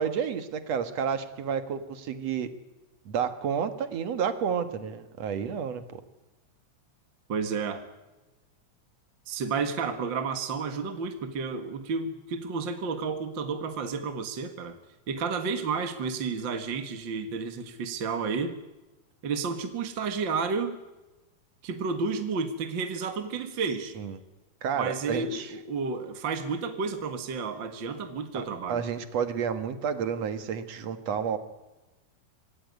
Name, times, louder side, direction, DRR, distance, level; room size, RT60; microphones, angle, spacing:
voice 1, 0.0-2.5 3.1-6.0 24.0-24.2 24.6-25.5 28.3-31.4, right 7 dB, 60° right, 10 dB, 2.4 m, -30 dB
voice 2, 7.3-7.9 9.3-14.8 15.1-18.6 19.2-20.8 21.6-24.0 24.7-28.8, right 5 dB, 45° right, 7 dB, 1.9 m, -31 dB
25.5 x 19.0 x 9.5 m, 1.1 s
omnidirectional pair, 3.7 m